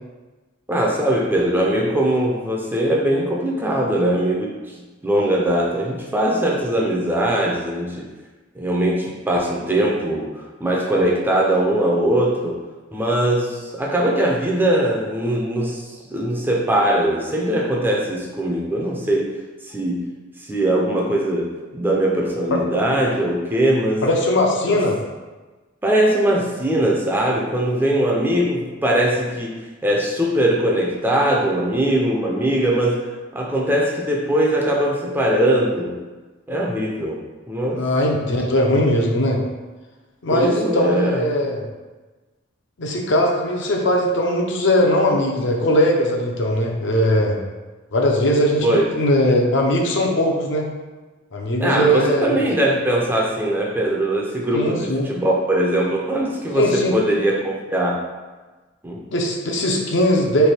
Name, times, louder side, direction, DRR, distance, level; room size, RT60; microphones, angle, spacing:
voice 1, 0.7-4.6 5.0-8.1 8.6-12.6 12.9-19.4 19.6-20.1 20.4-24.1 24.7-24.8 25.8-36.0 36.5-37.8 40.3-41.2 48.6-48.9 51.6-58.0 58.8-59.0, right 1 dB, 10° right, -2 dB, 0.4 m, -21 dB
voice 2, 24.0-25.0 37.7-39.4 40.2-41.6 42.8-47.4 47.9-50.7 51.3-52.4 54.5-55.1 56.5-57.0 59.1-60.5, left 1 dB, 60° left, 0 dB, 0.6 m, -19 dB
3.3 x 2.6 x 4.2 m, 1.2 s
head